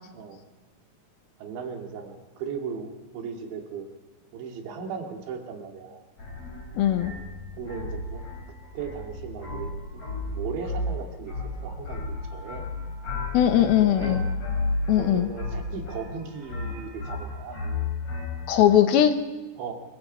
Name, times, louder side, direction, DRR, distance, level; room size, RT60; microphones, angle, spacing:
voice 1, 1.4-3.9 4.3-6.0 7.6-8.2 8.7-10.0 10.3-11.3 11.6-12.6 13.7-14.2 14.9-17.6 19.6-19.7, right 6 dB, 85° right, 2 dB, 4.6 m, -37 dB
sound 1, 6.2-18.6, left 2 dB, 35° left, 5.3 m, -33 dB
voice 2, 6.8-7.1 13.3-14.3 14.9-15.3 18.5-19.1, left 11 dB, 70° left, 8 dB, 2.6 m, -20 dB
24.5 x 23.0 x 5.6 m, 1.2 s
omnidirectional pair, 5.0 m